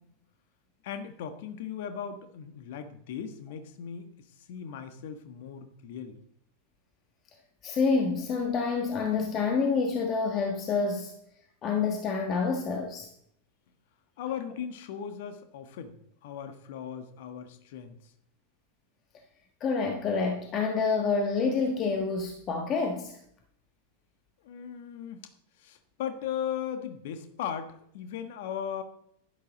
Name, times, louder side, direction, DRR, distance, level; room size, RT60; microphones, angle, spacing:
voice 1, 0.8-6.2 14.2-18.1 24.4-25.3 25.6-28.8, left 8 dB, 50° left, 1.4 m, -38 dB
voice 2, 7.6-11.1 11.6-13.1 19.6-23.2, left 4 dB, 30° left, 1.3 m, -28 dB
11.5 x 11.5 x 4.0 m
figure-of-eight pair, 90°, 0 cm